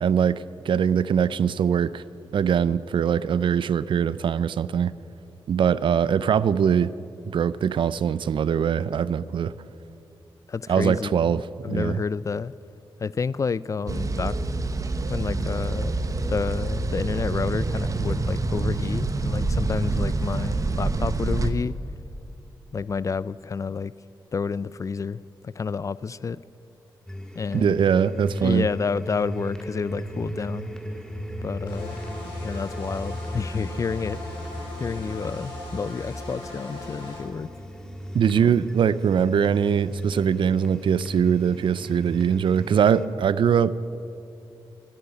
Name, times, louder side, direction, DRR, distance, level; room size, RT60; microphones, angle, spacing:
voice 1, 0.0-2.0 2.3-4.9 5.5-6.9 7.3-9.5 10.7-11.4 11.7-12.0 27.5-28.7 38.1-43.8, right 8 dB, 70° right, 17 dB, 0.4 m, -22 dB
voice 2, 10.5-12.5 13.0-14.3 15.1-16.0 16.3-21.7 22.7-23.9 24.3-26.4 27.3-27.9 28.4-30.7 31.4-32.0 32.4-34.2 34.8-37.5 38.4-38.6, left 5 dB, 40° left, 19 dB, 0.3 m, -29 dB
sound 1, 13.9-21.5, right 3 dB, 40° right, 1.0 m, -26 dB
sound 2, 27.1-43.1, equal, 5° left, 1.5 m, -36 dB
sound 3, 31.7-37.2, left 2 dB, 85° left, 4.8 m, -40 dB
12.5 x 10.5 x 9.8 m, 2.7 s
cardioid pair, 95°, 9 cm